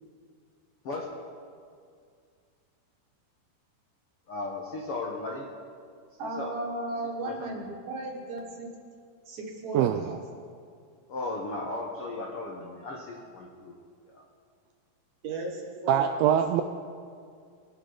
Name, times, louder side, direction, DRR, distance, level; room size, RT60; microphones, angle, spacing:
voice 1, 4.3-5.4 6.2-6.5 7.2-7.3 11.1-13.7 14.1-14.2, left 2 dB, 75° left, -2 dB, 1.3 m, -36 dB
voice 2, 6.2-8.7 9.3-10.2 15.2-16.4, right 2 dB, 55° right, 0 dB, 2.4 m, -35 dB
voice 3, 9.7-10.1 15.9-16.6, right 10 dB, 85° right, 7 dB, 2.1 m, -23 dB
24.0 x 8.3 x 4.0 m, 2.2 s
omnidirectional pair, 4.5 m